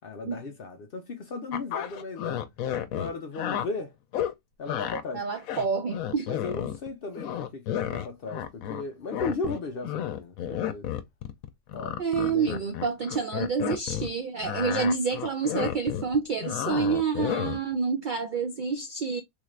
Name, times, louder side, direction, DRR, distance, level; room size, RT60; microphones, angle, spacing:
voice 1, 0.0-2.4 2.9-3.9 4.6-5.3 6.3-10.9 11.7-12.7, left 3 dB, 60° left, 0.6 m, -36 dB
sound 1, 1.5-3.7 4.1-4.3 4.7-5.0 5.4-6.9 7.2-8.8 9.1-14.1 14.4-17.7, left 10 dB, 80° left, 1.0 m, -32 dB
voice 2, 5.1-6.3 12.0-19.2, right 5 dB, 80° right, 0.4 m, -28 dB
3.5 x 2.4 x 3.2 m
omnidirectional pair, 1.4 m